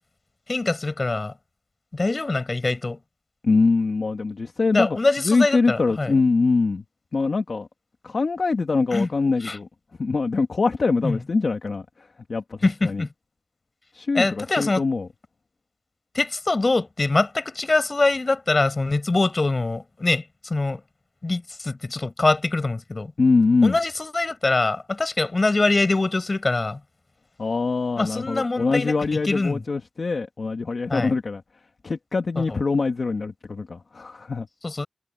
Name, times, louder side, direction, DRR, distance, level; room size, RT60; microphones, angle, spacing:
voice 1, 0.5-1.3 1.9-3.0 4.7-6.1 8.9-9.1 9.4-9.6 11.0-11.2 12.6-13.1 14.1-14.8 16.1-20.2 20.5-20.8 21.2-23.1 23.6-26.8 28.0-29.6 30.9-31.1 32.4-32.6 34.6-34.9, left 3 dB, 55° left, 6.4 m, -23 dB
voice 2, 3.4-6.8 7.1-7.7 8.0-9.7 10.0-13.0 13.9-15.1 23.2-23.8 27.4-31.4 31.8-34.5, left 4 dB, 85° left, 2.0 m, -23 dB
cardioid pair, 45°, 0 cm